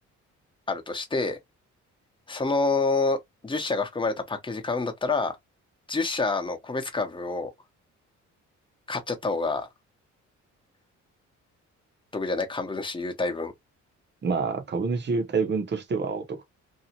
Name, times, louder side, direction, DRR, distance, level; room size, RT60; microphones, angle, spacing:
voice 1, 0.7-1.4 2.3-3.2 3.4-5.3 5.9-7.5 8.9-9.7 12.1-13.5, left 3 dB, 15° left, 1.0 m, -27 dB
voice 2, 14.2-16.4, right 4 dB, 35° right, 0.9 m, -27 dB
2.8 x 2.4 x 2.8 m
cardioid pair, 90°, 30 cm